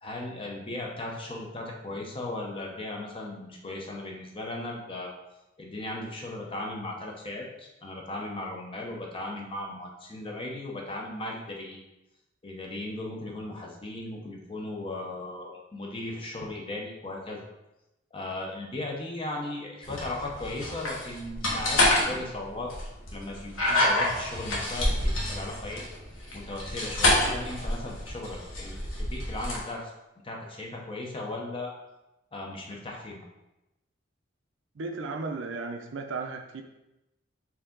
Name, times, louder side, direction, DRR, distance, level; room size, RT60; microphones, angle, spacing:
voice 1, 0.0-5.1 5.6-11.8 12.4-17.5 18.1-22.7 23.1-24.9 25.3-25.8 26.3-29.9 30.2-31.7 32.3-33.2, left 2 dB, 25° left, 0 dB, 0.7 m, -37 dB
sound 1, 19.8-29.6, left 1 dB, 90° left, 1.2 m, -28 dB
voice 2, 34.8-36.6, right 3 dB, 70° right, 4 dB, 0.5 m, -35 dB
4.6 x 2.8 x 3.8 m, 0.94 s
head